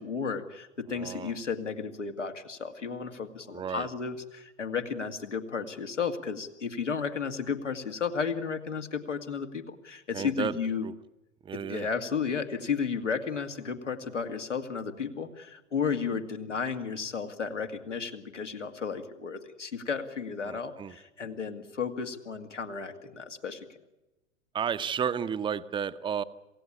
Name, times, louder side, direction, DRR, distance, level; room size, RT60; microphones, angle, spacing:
voice 1, 0.0-10.8 11.5-23.7, left 6 dB, 80° left, 5 dB, 2.3 m, -33 dB
voice 2, 0.9-1.3 3.5-3.9 10.1-10.6 10.8-10.9 11.4-11.9 20.4-21.0 24.5-26.2, right 8 dB, 15° right, 13 dB, 0.7 m, -32 dB
27.0 x 16.5 x 8.7 m, 1.0 s
figure-of-eight pair, 95°, 36 cm